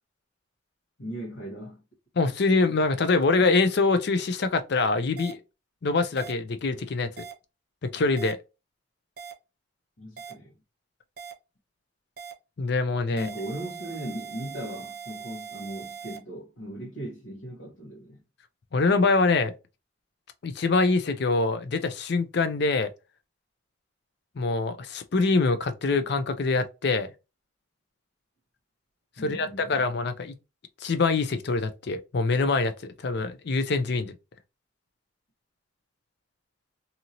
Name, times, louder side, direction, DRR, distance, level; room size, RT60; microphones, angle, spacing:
voice 1, 1.0-1.8 10.0-10.5 13.1-18.2 29.2-29.9, right 1 dB, 90° left, 1.2 m, -38 dB
voice 2, 2.2-5.4 5.8-7.2 7.8-8.4 12.6-13.3 18.7-19.5 20.4-22.9 24.4-27.1 29.2-30.4 30.8-34.2, left 3 dB, 55° left, 0.5 m, -24 dB
sound 1, 5.2-5.3 6.2-6.3 7.2-7.3 8.2-8.3 9.2-9.3 10.2-10.3 11.2-11.3 12.2-12.3 13.2-16.2, right 6 dB, 50° right, 0.7 m, -40 dB
2.8 x 2.6 x 2.8 m
head